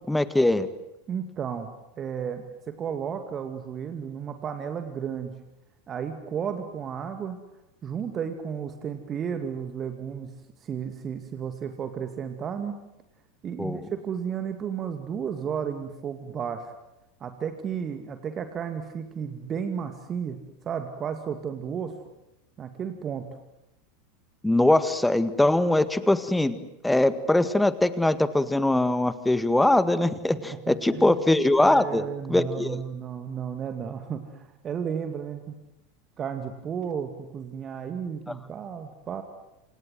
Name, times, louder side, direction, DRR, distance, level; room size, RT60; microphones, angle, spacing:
voice 1, 0.1-0.7 13.6-13.8 24.4-32.0 32.3-32.8, left 1 dB, 5° left, 13 dB, 1.8 m, -22 dB
voice 2, 1.1-1.7 2.0-5.4 5.9-7.4 7.8-10.3 10.6-12.8 13.4-16.7 17.2-21.9 22.6-23.4 30.5-31.2 31.6-35.5 36.2-39.2, right 7 dB, 30° right, 7 dB, 2.4 m, -33 dB
28.0 x 27.0 x 7.9 m, 0.89 s
figure-of-eight pair, 85°, 0 cm